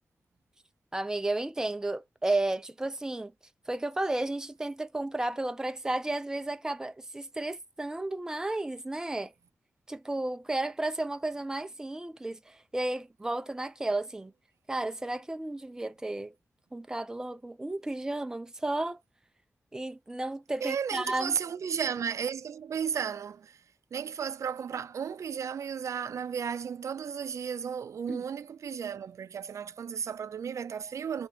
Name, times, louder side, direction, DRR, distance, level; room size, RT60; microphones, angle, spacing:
voice 1, 0.9-3.3 3.7-9.3 9.9-14.3 14.7-16.3 16.7-19.0 19.7-21.4 28.1-28.2, right 2 dB, 10° right, 0.4 m, -33 dB
voice 2, 20.6-23.6 23.9-31.3, right 7 dB, 85° right, 0.4 m, -34 dB
2.9 x 2.8 x 3.4 m
wide cardioid pair, 165°, 5 cm